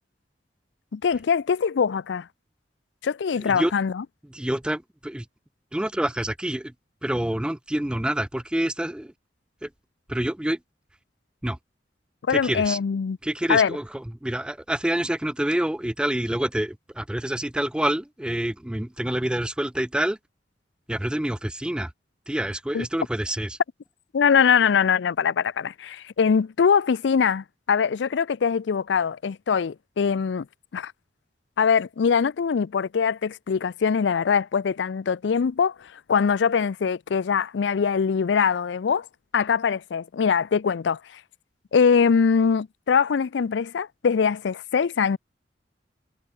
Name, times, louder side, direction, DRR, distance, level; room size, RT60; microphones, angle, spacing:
voice 1, 0.9-2.3 3.0-4.0 12.3-13.2 13.5-13.8 22.7-22.9 24.1-30.5 30.7-30.9 31.6-39.1 39.3-41.2 41.7-45.2, left 6 dB, 80° left, 0.4 m, -22 dB
voice 2, 4.3-5.2 5.7-6.7 7.0-9.1 9.6-9.7 10.1-10.6 11.4-11.6 12.3-12.8 13.2-20.2 20.9-21.9 22.3-23.6, right 1 dB, 5° right, 0.4 m, -27 dB
head